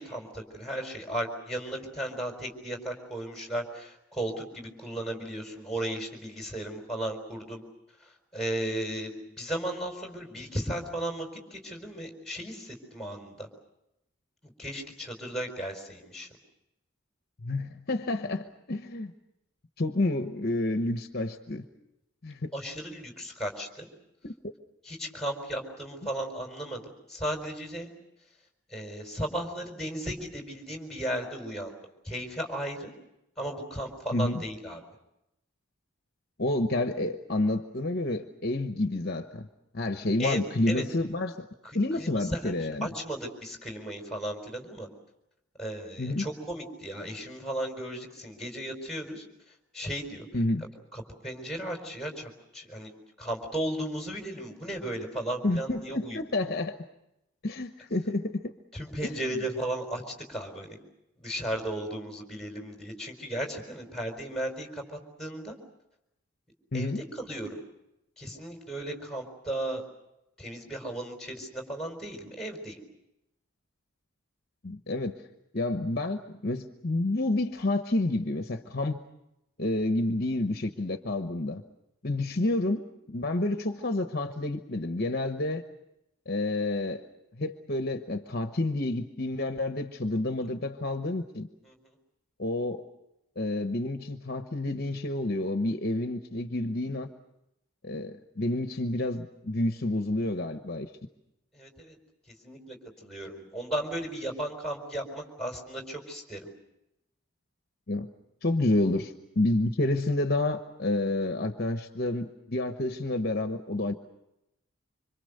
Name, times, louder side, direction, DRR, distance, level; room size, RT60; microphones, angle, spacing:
voice 1, 0.0-7.6 8.0-13.5 14.4-16.3 22.5-23.9 24.8-27.9 28.7-31.7 32.0-32.9 33.4-34.8 40.2-40.4 40.7-40.8 41.6-44.9 45.6-49.2 49.7-50.3 50.9-52.9 53.2-56.2 58.7-60.8 61.2-65.6 66.7-67.6 68.2-69.8 70.4-72.8 91.6-91.9 101.5-102.0 102.4-106.5, right 1 dB, ahead, 3 dB, 4.4 m, -35 dB
voice 2, 17.4-19.1 19.8-21.6 22.2-22.5 24.2-24.5 34.1-34.4 36.4-39.5 39.7-41.5 41.7-42.9 46.0-46.3 50.3-50.6 55.4-56.7 57.4-58.5 59.0-59.2 66.7-67.0 74.6-75.2 75.5-79.0 79.6-81.6 82.0-85.6 86.3-87.0 87.4-91.5 92.4-92.8 93.4-97.1 97.8-100.9 107.9-108.1 108.4-113.9, left 2 dB, 45° left, 6 dB, 1.1 m, -29 dB
26.0 x 25.5 x 6.7 m, 0.87 s
head